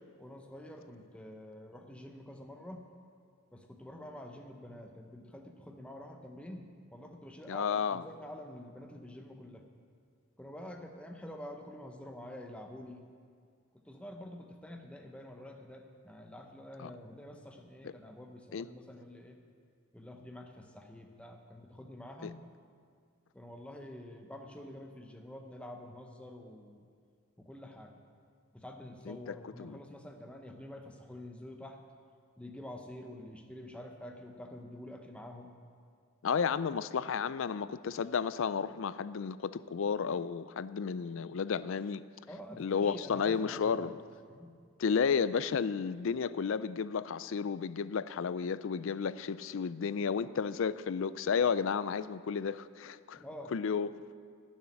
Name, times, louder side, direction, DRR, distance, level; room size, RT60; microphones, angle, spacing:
voice 1, 0.2-2.9 3.5-9.6 10.4-13.0 13.8-19.4 19.9-22.4 23.3-26.8 27.4-28.0 28.5-31.8 32.4-35.5 42.3-44.0 44.3-44.5 53.2-53.5, left 1 dB, 5° left, 3 dB, 0.7 m, -47 dB
voice 2, 7.5-8.0 16.8-16.9 17.8-17.9 18.5-18.7 22.2-22.3 29.1-29.8 36.2-42.0 42.6-44.0 44.8-53.2 53.5-53.9, left 6 dB, 60° left, 16 dB, 0.4 m, -32 dB
12.0 x 7.3 x 9.8 m, 2.1 s
head